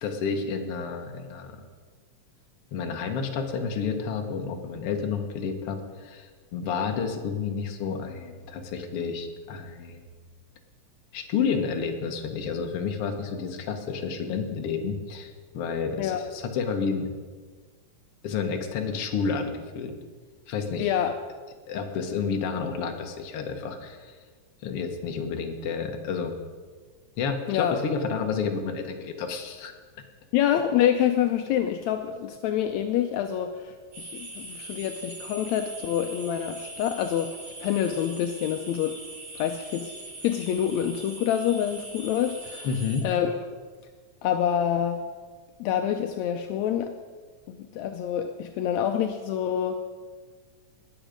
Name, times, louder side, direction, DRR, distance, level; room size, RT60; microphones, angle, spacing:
voice 1, 0.0-1.6 2.7-10.0 11.1-17.1 18.2-19.9 20.5-20.9 21.7-24.2 24.6-26.3 27.2-29.7 42.6-43.1, left 5 dB, 60° left, 4 dB, 2.0 m, -30 dB
voice 2, 20.8-21.1 27.5-27.8 30.3-39.0 39.4-39.9 40.2-42.7 43.0-43.3 44.2-45.1 45.6-47.0 47.5-49.8, left 10 dB, 80° left, 6 dB, 1.9 m, -27 dB
sound 1, 33.9-43.0, right 2 dB, 75° right, 5.9 m, -42 dB
20.0 x 7.2 x 5.1 m, 1.5 s
omnidirectional pair, 3.3 m